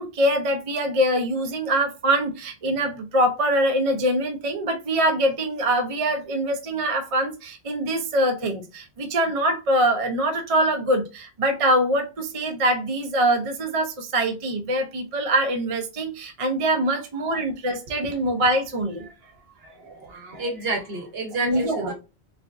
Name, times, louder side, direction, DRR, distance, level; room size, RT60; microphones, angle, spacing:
voice 1, 0.0-19.0 21.4-21.9, right 1 dB, 40° right, 0.6 m, -23 dB
voice 2, 19.6-21.9, right 3 dB, 65° right, 1.2 m, -30 dB
3.5 x 3.3 x 2.5 m
omnidirectional pair, 1.1 m